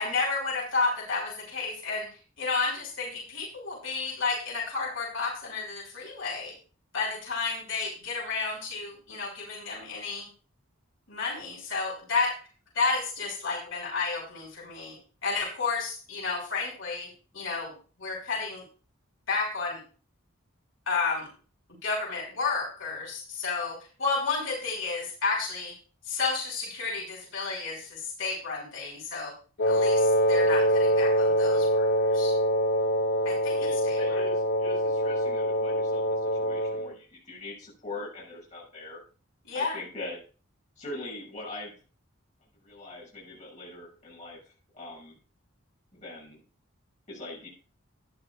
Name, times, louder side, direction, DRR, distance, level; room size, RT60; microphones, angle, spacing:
voice 1, 0.0-2.1 2.4-6.5 6.9-10.3 11.1-12.4 12.7-15.0 15.2-17.7 18.0-18.6 19.3-19.8 20.9-21.3 21.8-25.7 26.0-29.3 29.6-32.3 33.2-34.0 39.4-39.8, left 4 dB, 70° left, -3 dB, 6.1 m, -31 dB
Wind instrument woodwind instrument, 29.6-36.9, equal, 55° left, 0.7 m, -24 dB
voice 2, 33.5-39.0 39.5-40.2 40.8-41.8 42.6-45.1 45.9-46.4 47.1-47.5, left 2 dB, 35° left, -5 dB, 6.9 m, -42 dB
14.0 x 11.0 x 2.4 m, 0.37 s
head